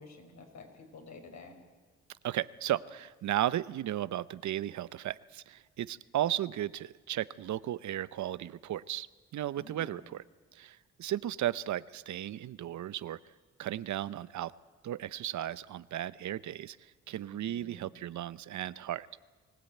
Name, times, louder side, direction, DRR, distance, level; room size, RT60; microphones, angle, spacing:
voice 1, 0.0-1.6 9.5-10.0 17.3-17.9, left 3 dB, 70° left, 3 dB, 5.1 m, -51 dB
voice 2, 2.2-9.1 9.3-10.2 10.5-13.2 13.6-14.5 14.8-16.8 17.1-19.1, right 12 dB, 75° right, 17 dB, 0.7 m, -35 dB
23.5 x 16.5 x 9.2 m, 1.5 s
cardioid pair, 85°, 29 cm